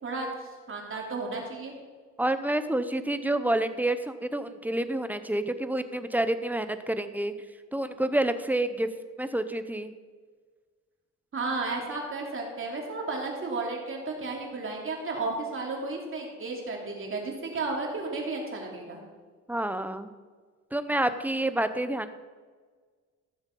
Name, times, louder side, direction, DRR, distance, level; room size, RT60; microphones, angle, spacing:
voice 1, 0.0-1.7 11.3-19.0, right 3 dB, 45° right, 0 dB, 3.2 m, -33 dB
voice 2, 2.2-7.3 7.7-8.9 9.2-9.9 19.5-20.1 20.7-22.1, right 1 dB, 5° right, 10 dB, 0.8 m, -28 dB
14.5 x 7.1 x 5.4 m, 1.5 s
cardioid pair, 90°, 30 cm